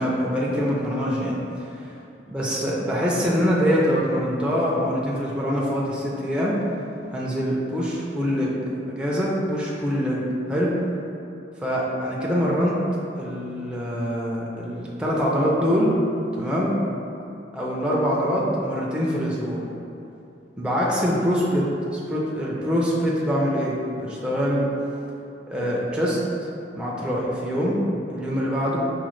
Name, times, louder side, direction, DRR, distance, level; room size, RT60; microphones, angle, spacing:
voice 1, 0.0-1.4 1.7-1.9 2.3-6.6 7.1-8.6 8.9-10.7 11.6-12.8 13.2-16.0 16.3-16.8 17.5-19.6 20.6-21.7 21.9-24.7 25.5-26.2 26.8-27.8 28.1-28.8, equal, 5° right, -5 dB, 0.4 m, -24 dB
5.0 x 2.1 x 3.0 m, 2.7 s
head